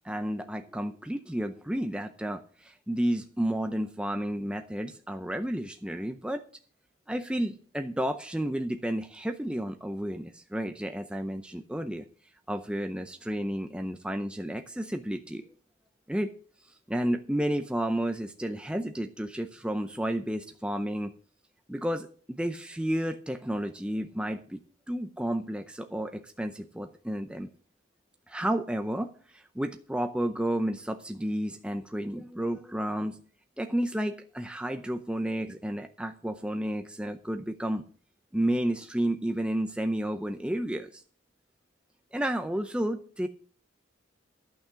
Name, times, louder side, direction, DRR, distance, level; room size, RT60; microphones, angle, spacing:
voice 1, 0.0-6.4 7.1-12.0 12.5-15.4 16.1-16.3 16.9-21.1 21.7-24.6 24.9-27.5 28.3-33.2 33.6-37.8 38.3-41.0 42.1-43.3, right 1 dB, 5° right, 6 dB, 0.6 m, -31 dB
11.5 x 6.3 x 6.9 m, 0.42 s
head